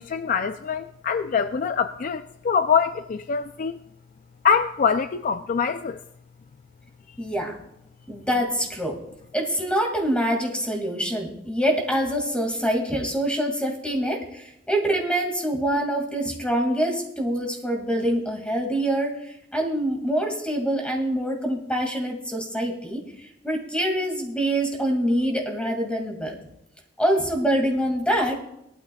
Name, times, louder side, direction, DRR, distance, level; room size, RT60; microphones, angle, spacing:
voice 1, 0.0-3.8 4.4-6.0, left 6 dB, 45° left, 10 dB, 0.4 m, -24 dB
voice 2, 7.2-7.6 8.1-9.0 9.3-26.4 27.0-28.4, right 1 dB, 5° left, 1 dB, 2.1 m, -25 dB
19.0 x 12.0 x 2.3 m, 0.80 s
head